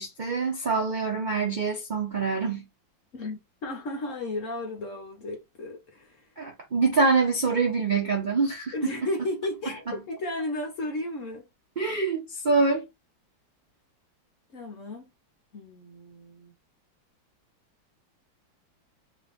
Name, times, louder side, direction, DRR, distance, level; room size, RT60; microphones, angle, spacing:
voice 1, 0.0-2.7 6.4-8.7 11.8-12.9, right 4 dB, 70° right, 0.4 m, -25 dB
voice 2, 3.1-6.3 8.7-11.4 14.5-15.1 15.5-16.5, left 1 dB, 50° left, 1.0 m, -34 dB
3.2 x 2.8 x 3.5 m
omnidirectional pair, 2.1 m